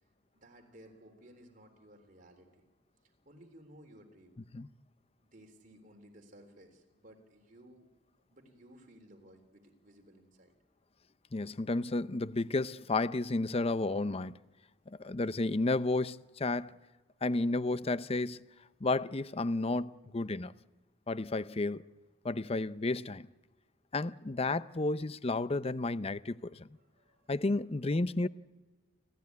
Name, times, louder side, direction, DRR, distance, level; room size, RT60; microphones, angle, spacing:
voice 1, 0.3-2.6 3.0-4.3 5.2-7.9 8.3-10.6 26.7-27.3, right 1 dB, 45° right, 3.7 m, -57 dB
voice 2, 11.3-14.3 15.0-16.8 17.2-18.5 18.8-20.5 21.1-21.8 22.2-23.3 23.9-26.7 27.3-28.3, left 2 dB, 30° left, 0.6 m, -32 dB
29.0 x 15.0 x 9.6 m
head